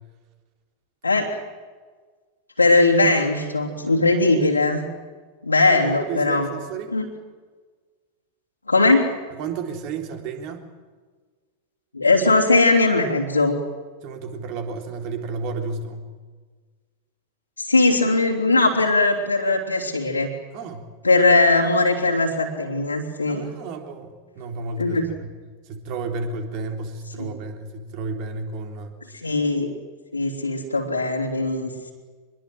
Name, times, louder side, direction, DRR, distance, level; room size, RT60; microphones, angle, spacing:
voice 1, 2.6-4.8 5.4-6.5 6.9-7.0 8.7-9.1 11.9-13.6 17.6-20.3 21.0-23.5 24.8-25.1 27.2-27.3 29.2-29.7 30.1-31.9, left 2 dB, 80° left, -3 dB, 3.2 m, -19 dB
voice 2, 5.7-6.9 9.4-10.6 14.0-16.1 20.5-20.9 23.3-25.4 25.7-29.0, right 4 dB, 45° right, 5 dB, 3.7 m, -32 dB
25.0 x 21.5 x 7.9 m, 1.5 s
figure-of-eight pair, 90°, 0 cm